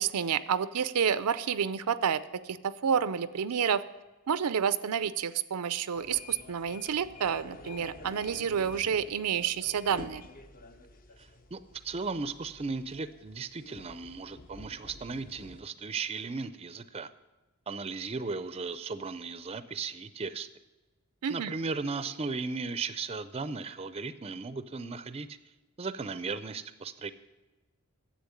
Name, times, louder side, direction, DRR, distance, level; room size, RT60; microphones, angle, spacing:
voice 1, 0.0-3.8 4.3-10.2 21.2-21.6, right 7 dB, 85° right, 15 dB, 0.5 m, -29 dB
sound 1, 5.9-15.6, left 3 dB, 40° left, 0.8 m, -49 dB
voice 2, 11.2-17.1 17.7-20.5 21.3-25.3 25.8-27.1, right 4 dB, 25° right, 14 dB, 0.5 m, -36 dB
10.5 x 7.6 x 9.7 m, 1.1 s
head